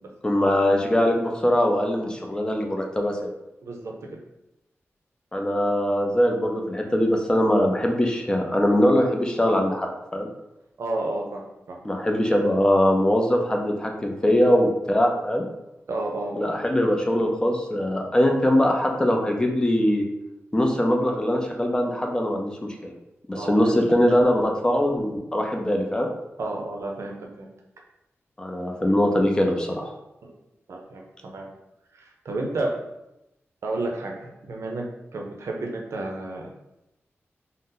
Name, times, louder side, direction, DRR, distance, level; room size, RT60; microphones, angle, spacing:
voice 1, 0.2-3.3 5.3-10.3 11.8-15.5 16.3-20.0 20.5-22.5 22.8-22.9 23.3-26.1 28.4-29.9, left 1 dB, 15° left, 2 dB, 0.4 m, -22 dB
voice 2, 3.6-3.9 10.8-11.8 15.9-16.5 23.3-23.7 26.4-27.5 30.2-30.4 30.7-31.5 31.9-32.8 33.6-36.5, right 2 dB, 75° right, 0 dB, 0.5 m, -31 dB
2.6 x 2.0 x 3.7 m, 0.90 s
wide cardioid pair, 130°, 5 cm